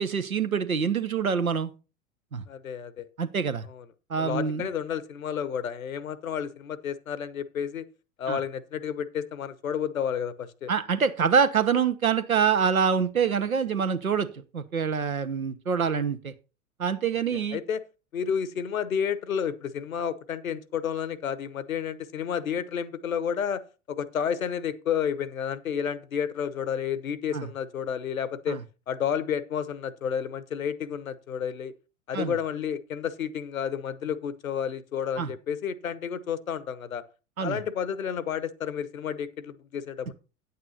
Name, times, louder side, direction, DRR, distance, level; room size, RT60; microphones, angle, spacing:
voice 1, 0.0-1.7 2.3-2.4 3.2-3.7 4.1-4.7 8.3-8.4 10.7-14.3 14.5-16.3 16.8-17.6 27.3-27.5 28.5-28.6 32.1-32.4 35.2-35.3 37.4-37.6, right 6 dB, 80° right, 1.0 m, -25 dB
voice 2, 2.5-3.0 3.7-3.8 4.2-7.9 8.2-10.7 17.3-17.8 18.1-23.6 23.9-28.6 28.9-31.7 32.1-37.0 37.4-40.1, left 8 dB, 75° left, 1.0 m, -31 dB
9.4 x 8.6 x 4.1 m
figure-of-eight pair, 85°, 42 cm